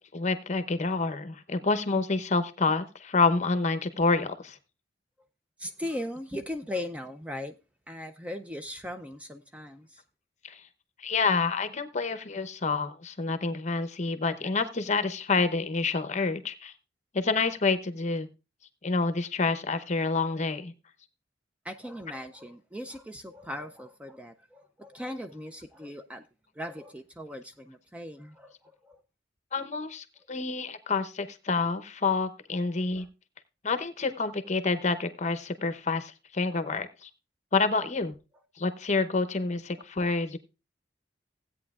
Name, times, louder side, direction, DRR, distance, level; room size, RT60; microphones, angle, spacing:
voice 1, 0.1-4.6 10.4-10.6 11.0-16.7 17.1-18.3 18.8-20.7 29.5-33.1 33.6-37.1 37.5-38.1 38.6-40.4, left 4 dB, 40° left, 0.8 m, -28 dB
voice 2, 5.6-7.6 7.9-10.0 21.6-26.2 26.5-29.0 33.0-33.1, left 1 dB, 5° right, 0.4 m, -39 dB
16.0 x 8.6 x 2.4 m
head